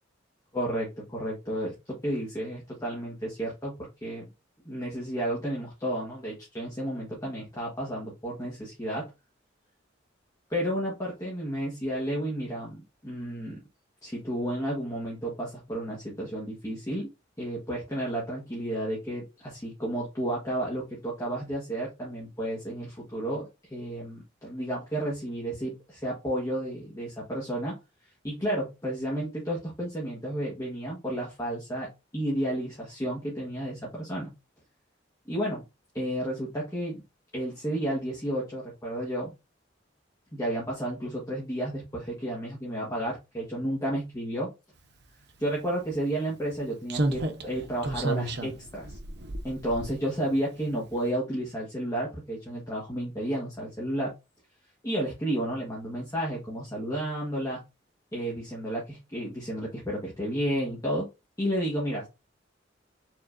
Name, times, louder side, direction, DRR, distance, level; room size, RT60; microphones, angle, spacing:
voice 1, 0.5-4.3 4.6-9.1 10.5-13.6 14.0-17.1 17.4-27.8 28.2-34.3 35.3-35.6 35.9-37.0 37.3-39.3 40.3-44.5 45.4-49.0 49.4-54.1 54.8-57.6 58.1-61.1 61.4-62.1, right 1 dB, 20° left, -4 dB, 1.3 m, -32 dB
Slam, 45.5-45.6 46.9-50.4 50.7-50.9, right 1 dB, 60° right, 0.8 m, -32 dB
4.6 x 3.7 x 2.5 m, 0.25 s
head